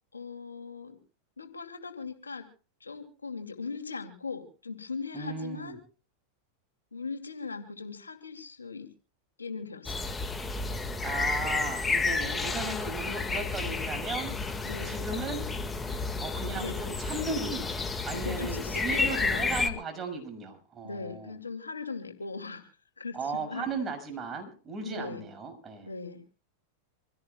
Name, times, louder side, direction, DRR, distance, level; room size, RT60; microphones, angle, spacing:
voice 1, 0.1-1.0 1.4-2.5 2.8-5.8 6.9-8.9 9.4-10.1 14.6-15.0 16.5-16.8 18.1-19.5 20.8-22.7 23.0-23.7 24.8-25.3 25.8-26.2, left 4 dB, 85° left, 5 dB, 2.5 m, -39 dB
voice 2, 5.1-5.8 11.0-15.5 16.2-17.8 18.0-21.3 23.1-25.9, right 4 dB, 25° right, 4 dB, 6.3 m, -36 dB
sound 1, 9.9-19.7, left 4 dB, 15° left, 1.8 m, -31 dB
27.0 x 16.5 x 2.3 m, 0.38 s
figure-of-eight pair, 95°, 0 cm